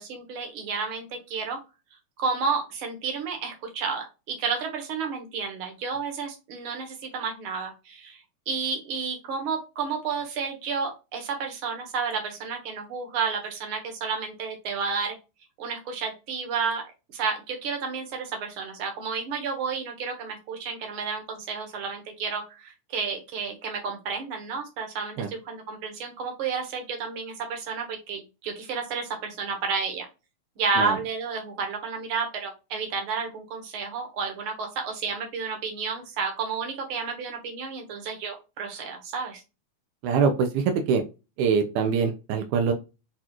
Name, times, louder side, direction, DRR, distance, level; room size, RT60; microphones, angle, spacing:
voice 1, 0.0-1.6 2.2-8.2 8.5-15.2 15.6-16.8 17.1-30.1 30.6-39.4, right 5 dB, 60° right, 3 dB, 1.5 m, -31 dB
voice 2, 40.0-41.0 41.4-42.7, right 6 dB, 85° right, 5 dB, 2.2 m, -23 dB
6.5 x 2.4 x 2.9 m, 0.28 s
omnidirectional pair, 3.5 m